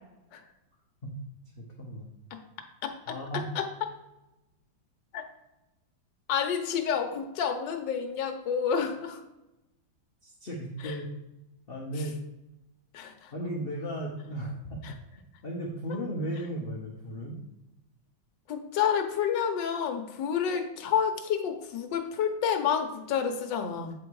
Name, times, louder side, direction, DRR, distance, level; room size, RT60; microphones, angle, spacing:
voice 1, 1.6-2.1 3.1-3.4 10.2-11.1 11.7-12.2 13.3-15.0 15.4-17.4, right 1 dB, 45° left, -2 dB, 0.8 m, -35 dB
voice 2, 6.3-9.2 10.8-10.9 12.9-13.1 18.5-23.9, left 7 dB, 70° left, 5 dB, 1.5 m, -29 dB
8.5 x 3.6 x 4.7 m, 0.95 s
omnidirectional pair, 2.1 m